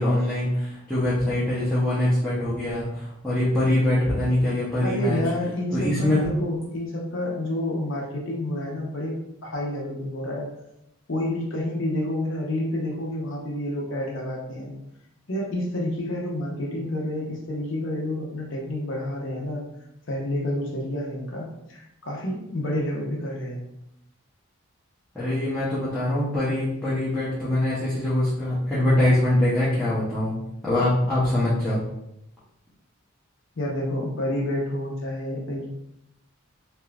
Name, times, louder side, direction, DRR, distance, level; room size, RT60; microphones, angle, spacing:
voice 1, 0.0-5.2 5.7-6.3 25.1-30.3 30.6-31.8, left 1 dB, 5° left, -12 dB, 0.7 m, -23 dB
voice 2, 4.8-9.2 9.4-10.5 11.1-14.7 15.3-19.6 20.1-23.6 33.6-35.7, left 1 dB, 55° left, -2 dB, 0.7 m, -29 dB
3.3 x 2.8 x 2.3 m, 0.83 s
head